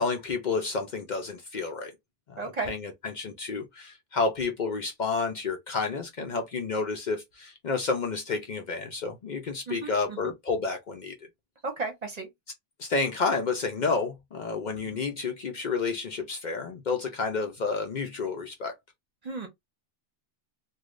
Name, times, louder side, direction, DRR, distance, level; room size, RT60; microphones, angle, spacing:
voice 1, 0.0-1.9 2.3-11.1 12.8-18.7, left 4 dB, 55° left, 0.6 m, -30 dB
voice 2, 2.4-2.7 9.7-10.3 11.6-12.3 14.7-15.0 19.2-19.5, right 3 dB, 45° right, 0.9 m, -35 dB
3.3 x 2.2 x 2.4 m
omnidirectional pair, 1.0 m